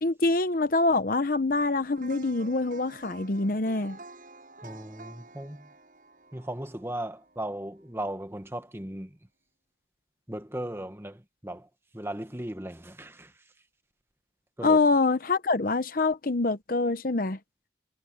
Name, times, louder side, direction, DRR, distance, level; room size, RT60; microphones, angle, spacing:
voice 1, 0.0-4.0 14.6-17.4, left 3 dB, 50° left, 0.8 m, -25 dB
sound 1, 2.0-8.0 8.4-8.5, right 2 dB, 45° right, 8.0 m, -50 dB
voice 2, 4.6-5.7 6.3-9.2 10.3-11.7 11.9-13.3 14.6-14.8, right 1 dB, 15° right, 1.4 m, -37 dB
head